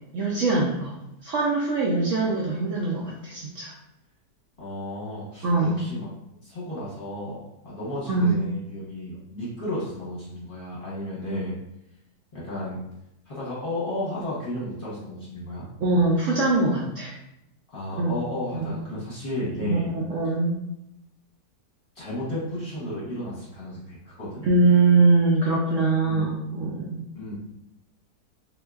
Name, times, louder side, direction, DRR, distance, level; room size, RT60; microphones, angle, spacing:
voice 1, 0.1-1.0 1.2-3.7 5.4-5.8 8.1-8.4 15.8-17.1 18.0-18.1 18.5-18.7 19.6-20.5 24.4-27.0, right 3 dB, 65° right, -4 dB, 0.8 m, -22 dB
voice 2, 4.6-6.1 6.4-11.5 12.3-12.8 13.3-15.6 17.7-19.9 22.0-24.4 26.1-26.3 27.1-27.3, left 1 dB, 40° left, -8 dB, 1.0 m, -33 dB
3.7 x 2.6 x 2.3 m, 0.84 s
omnidirectional pair, 1.7 m